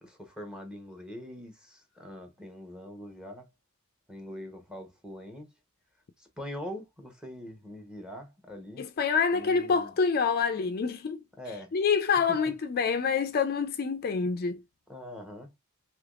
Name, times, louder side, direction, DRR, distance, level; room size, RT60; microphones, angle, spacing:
voice 1, 0.0-3.5 4.1-5.5 6.2-8.9 9.3-9.9 11.4-11.7 12.3-12.4 14.9-15.5, left 1 dB, 5° right, 0.9 m, -43 dB
voice 2, 8.8-11.2 11.7-14.6, left 5 dB, 45° left, 0.4 m, -27 dB
3.3 x 3.0 x 2.4 m
head